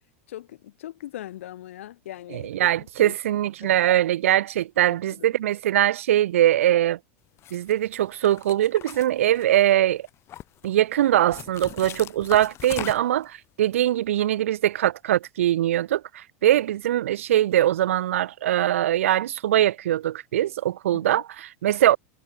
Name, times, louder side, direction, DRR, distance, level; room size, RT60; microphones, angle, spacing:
voice 1, 0.3-3.1 3.6-3.7 5.2-5.3 20.9-21.2, left 13 dB, 80° left, 1.8 m, -40 dB
voice 2, 2.3-7.0 7.5-10.1 10.6-22.0, right 12 dB, 85° right, 0.7 m, -22 dB
sound 1, 7.4-7.7 8.3-9.7 10.1-10.7 11.3-13.3, left 13 dB, 40° left, 2.2 m, -39 dB
hypercardioid pair, 115°, 7 cm